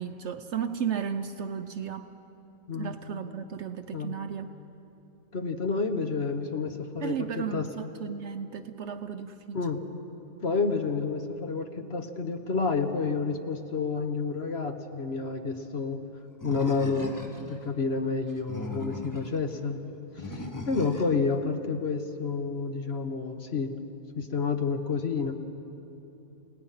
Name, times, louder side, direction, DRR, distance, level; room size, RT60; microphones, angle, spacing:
voice 1, 0.0-2.2 2.7-4.5 7.0-9.7, right 7 dB, 60° right, 9 dB, 0.9 m, -34 dB
voice 2, 5.3-7.7 9.5-9.8 10.4-16.0 16.4-17.2 17.5-19.8 20.1-23.7 24.1-25.4, left 4 dB, 50° left, 6 dB, 1.2 m, -29 dB
Animal, 16.4-17.6 18.3-19.4 20.2-21.2, left 1 dB, 15° left, 1.3 m, -38 dB
29.5 x 18.0 x 5.7 m, 2.9 s
omnidirectional pair, 1.5 m